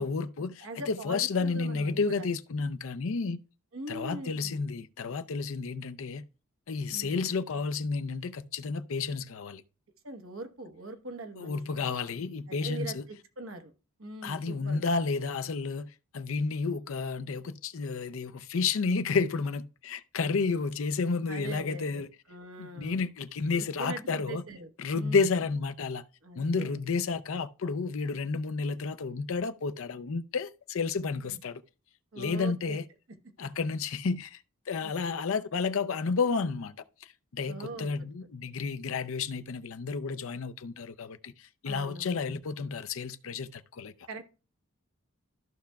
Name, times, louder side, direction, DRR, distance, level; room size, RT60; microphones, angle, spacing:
voice 1, 0.0-3.4 3.9-6.2 6.7-9.6 11.4-13.0 14.2-22.1 22.6-24.4 24.8-26.0 26.4-31.6 32.2-32.8 33.4-36.7 37.0-43.9, left 4 dB, 70° left, 0.5 m, -31 dB
voice 2, 0.6-2.3 3.7-4.6 6.9-7.3 10.0-11.8 12.5-13.7 14.0-14.9 21.3-23.0 23.6-24.7 24.9-25.3 26.2-26.8 31.2-31.4 32.1-32.8 34.8-35.2 37.5-37.9 41.6-42.2 44.1-44.3, right 2 dB, 70° right, 1.2 m, -42 dB
14.0 x 5.7 x 2.3 m
head